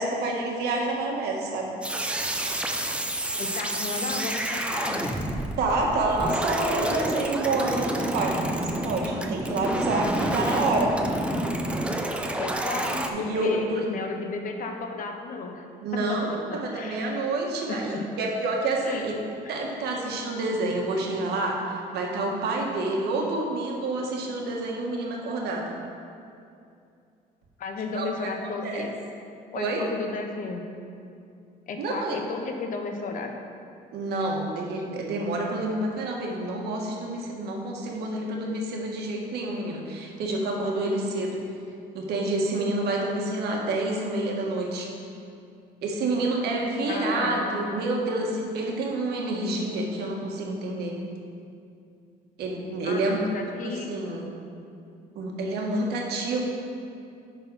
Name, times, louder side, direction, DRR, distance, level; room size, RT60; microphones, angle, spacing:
voice 1, 0.0-1.7 5.6-11.0 13.1-13.8 15.8-19.2 19.5-25.7 27.9-28.1 28.4-28.8 29.5-29.8 31.8-32.2 33.9-41.4 41.9-44.9 45.8-51.0 52.4-53.2 53.5-54.3 55.1-56.4, right 2 dB, 75° right, -1 dB, 1.5 m, -28 dB
sound 1, 1.8-13.1, right 1 dB, 5° right, 0.6 m, -29 dB
voice 2, 3.4-5.2 12.4-15.6 15.9-17.0 17.7-18.0 18.8-19.1 19.4-19.6 21.0-21.1 27.6-29.0 29.5-30.6 31.7-33.3 46.9-47.7 52.8-53.9, left 4 dB, 50° left, 4 dB, 1.0 m, -34 dB
9.9 x 4.1 x 5.4 m, 2.5 s
cardioid pair, 110°, 17 cm